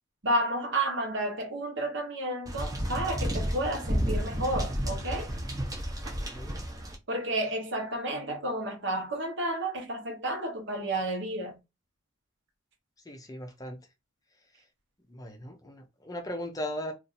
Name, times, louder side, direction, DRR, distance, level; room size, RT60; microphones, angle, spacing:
voice 1, 0.2-5.3 6.1-6.2 7.1-11.6, right 1 dB, 55° right, 1.0 m, -31 dB
sound 1, 2.5-6.9, equal, 15° right, 0.7 m, -32 dB
voice 2, 13.1-13.8 15.1-16.9, left 1 dB, 15° left, 0.5 m, -38 dB
2.7 x 2.5 x 4.0 m
head